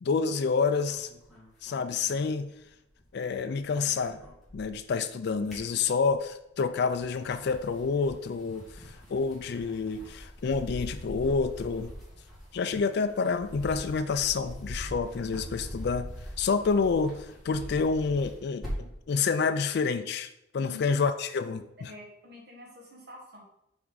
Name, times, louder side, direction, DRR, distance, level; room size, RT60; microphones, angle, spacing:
voice 1, 0.0-1.1 1.6-2.5 3.1-4.2 4.5-11.9 12.5-16.1 16.4-18.7 19.1-21.9, left 5 dB, 55° left, 9 dB, 0.4 m, -28 dB
sound 1, 0.8-3.0 3.3-4.9 5.2-6.3 6.8-19.0, equal, ahead, 2.2 m, -43 dB
voice 2, 21.9-23.4, left 2 dB, 55° right, -1 dB, 1.7 m, -47 dB
6.0 x 4.7 x 4.0 m, 0.81 s
head